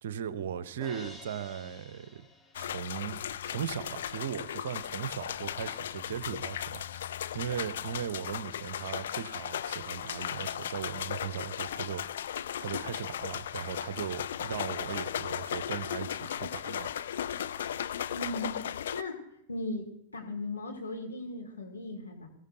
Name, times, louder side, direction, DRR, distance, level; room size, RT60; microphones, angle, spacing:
voice 1, 0.0-2.3 2.6-16.9, right 9 dB, 60° right, 16 dB, 0.8 m, -38 dB
Crash cymbal, 0.8-3.1, left 3 dB, 10° left, 1.6 m, -50 dB
sound 1, 2.5-19.0, left 10 dB, 60° left, 0.5 m, -36 dB
voice 2, 18.1-19.2 19.5-22.3, left 2 dB, 80° left, -1 dB, 3.3 m, -38 dB
23.0 x 15.0 x 2.7 m, 0.73 s
figure-of-eight pair, 90°, 0 cm